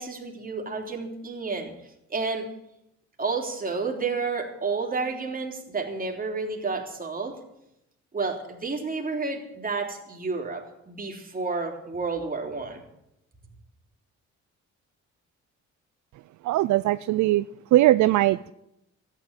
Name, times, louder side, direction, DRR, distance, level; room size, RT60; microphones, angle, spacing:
voice 1, 0.0-1.7 2.1-2.5 3.2-7.4 8.1-12.8, right 4 dB, 30° right, 3.4 m, -30 dB
voice 2, 16.4-17.4 17.7-18.5, right 15 dB, 70° right, 0.5 m, -20 dB
13.5 x 9.9 x 8.9 m
cardioid pair, 90°, 30 cm